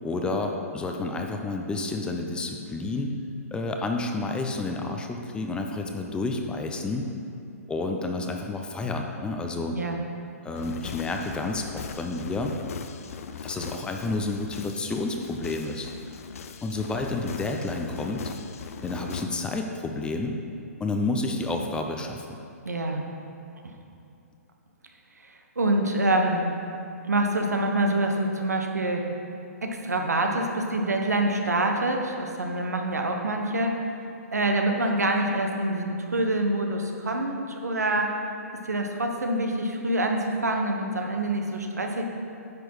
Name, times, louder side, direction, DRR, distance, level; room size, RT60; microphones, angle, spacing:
voice 1, 0.0-3.1 3.5-7.1 7.7-9.8 10.4-12.5 13.4-15.9 16.6-18.3 18.8-20.4 20.8-22.2, left 2 dB, 10° left, 3 dB, 0.6 m, -30 dB
sound 1, 10.5-19.2, left 6 dB, 65° left, 0.6 m, -40 dB
voice 2, 22.6-23.0 25.2-26.5 27.0-29.1 29.6-33.8 34.3-38.1 38.5-42.0, right 1 dB, 90° right, 3 dB, 1.2 m, -26 dB
10.0 x 6.2 x 4.7 m, 2.5 s
hypercardioid pair, 130°, 9 cm